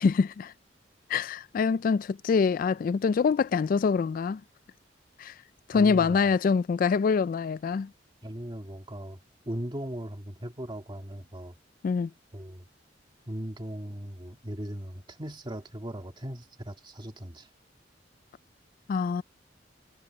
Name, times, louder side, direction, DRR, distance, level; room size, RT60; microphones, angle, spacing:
voice 1, 0.0-0.5 1.1-4.4 5.2-5.3 5.7-7.9 11.8-12.1 18.9-19.2, left 5 dB, 50° left, 0.3 m, -25 dB
voice 2, 5.7-6.2 8.2-9.2 9.5-11.5 12.3-12.7 13.3-17.5, equal, 25° right, 1.8 m, -38 dB
head